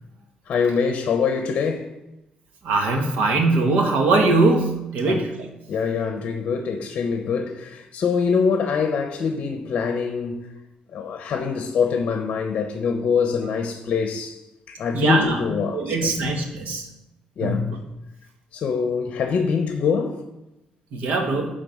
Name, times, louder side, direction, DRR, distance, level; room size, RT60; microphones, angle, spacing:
voice 1, 0.5-1.9 5.0-5.2 5.7-10.5 10.9-14.4 14.7-16.1 17.4-17.6 18.5-20.2, left 5 dB, 50° left, 0.7 m, -24 dB
voice 2, 2.6-5.5 14.9-15.4 15.7-16.9 17.4-17.8 20.9-21.5, right 3 dB, 75° right, 1.4 m, -21 dB
10.5 x 3.8 x 5.3 m
cardioid pair, 175°, 3 cm